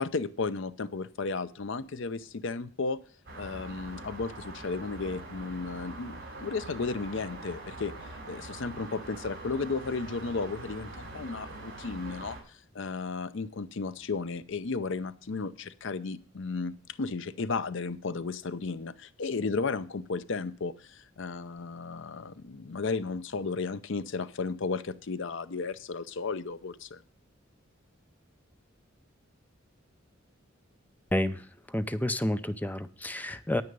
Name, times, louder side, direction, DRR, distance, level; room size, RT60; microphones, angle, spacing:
voice 1, 0.0-3.0 3.4-7.9 8.3-27.0, left 4 dB, 65° left, 14 dB, 0.6 m, -34 dB
sound 1, 3.3-12.4, right 2 dB, 50° right, 4.4 m, -43 dB
voice 2, 31.7-33.6, left 1 dB, 10° left, 11 dB, 0.6 m, -29 dB
9.6 x 9.1 x 5.3 m, 0.42 s
head